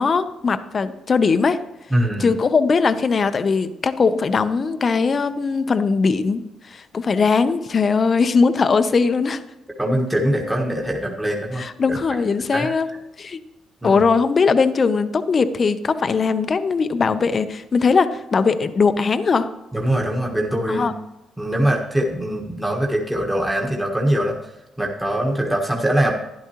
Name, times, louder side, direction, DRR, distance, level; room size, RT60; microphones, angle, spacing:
voice 1, 0.0-1.6 2.2-9.4 11.6-12.9 13.2-13.4 13.8-19.5 20.7-20.9, left 5 dB, 40° left, 11 dB, 0.7 m, -20 dB
voice 2, 1.9-2.3 9.8-12.0 12.5-12.7 13.8-14.0 19.7-20.9 21.4-24.4 24.8-26.1, right 1 dB, 5° right, -1 dB, 1.4 m, -22 dB
12.0 x 10.5 x 2.9 m, 0.96 s
cardioid pair, 90°, 0 cm